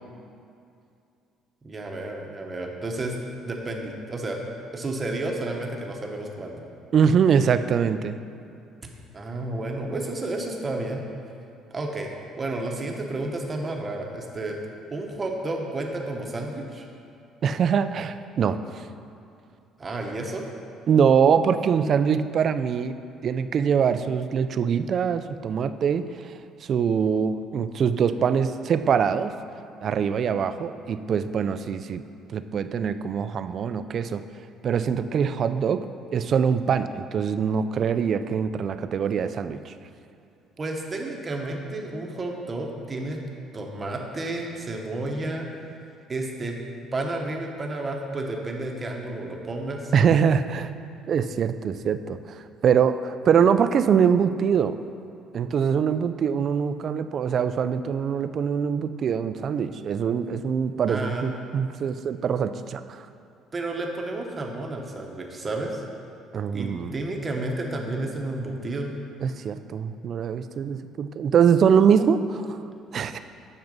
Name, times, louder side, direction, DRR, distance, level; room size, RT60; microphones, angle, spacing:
voice 1, 1.6-3.2 3.4-4.4 4.7-6.6 9.1-11.0 11.7-14.6 14.9-16.9 19.8-20.4 40.6-43.2 43.5-45.5 46.1-46.6 46.9-49.9 60.9-61.3 63.5-65.8 66.5-68.9, right 2 dB, 25° right, 1 dB, 1.0 m, -31 dB
voice 2, 6.9-8.2 17.4-18.8 20.9-26.3 26.6-29.3 29.8-32.0 32.3-34.2 34.6-35.9 36.1-39.7 49.9-50.7 51.1-54.8 55.3-63.1 66.3-66.9 69.2-72.6 72.9-73.2, right 7 dB, 45° right, 11 dB, 0.3 m, -23 dB
7.8 x 6.0 x 5.4 m, 2.5 s
cardioid pair, 140°, 0 cm